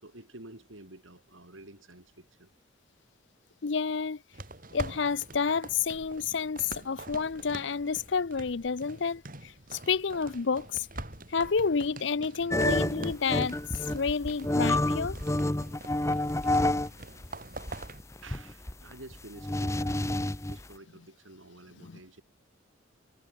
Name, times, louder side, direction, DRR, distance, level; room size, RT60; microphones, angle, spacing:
voice 1, 0.0-2.5 18.2-22.2, right 2 dB, 75° right, 5.8 m, -50 dB
voice 2, 3.6-4.2 4.7-9.2 9.7-10.9 11.3-13.6 13.9-15.2 21.9-22.0, left 5 dB, 60° left, 0.6 m, -29 dB
sound 1, 4.3-18.0, right 2 dB, 45° right, 7.5 m, -45 dB
sound 2, 12.5-16.9 17.2-20.6, left 1 dB, 15° left, 0.8 m, -28 dB
head